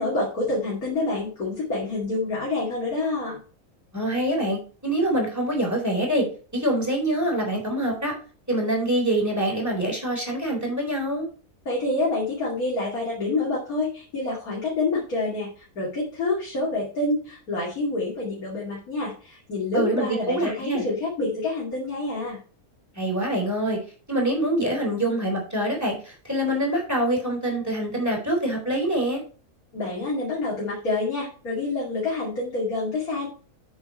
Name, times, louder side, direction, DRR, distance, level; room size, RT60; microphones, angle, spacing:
voice 1, 0.0-3.4 11.7-15.5 15.8-22.4 29.7-33.3, left 2 dB, 80° left, -5 dB, 2.9 m, -27 dB
voice 2, 3.9-6.2 6.5-8.1 8.5-11.3 19.7-20.8 23.0-23.8 24.1-29.2, right 1 dB, 10° right, -1 dB, 3.5 m, -25 dB
8.5 x 6.5 x 4.2 m, 0.38 s
omnidirectional pair, 1.5 m